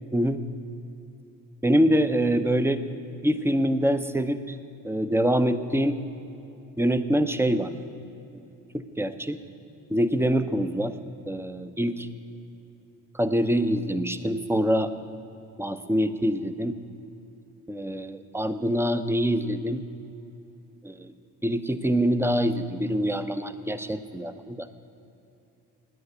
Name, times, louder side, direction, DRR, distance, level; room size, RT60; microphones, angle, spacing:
voice 1, 1.6-2.8 3.2-4.6 4.8-6.0 6.8-7.7 8.3-8.4 8.7-9.4 9.9-10.9 11.3-12.1 13.1-14.9 15.6-16.8 17.7-19.8 20.8-21.1 21.4-24.7, equal, 5° right, 10 dB, 0.6 m, -25 dB
11.0 x 9.6 x 8.3 m, 2.9 s
hypercardioid pair, 45°, 50 cm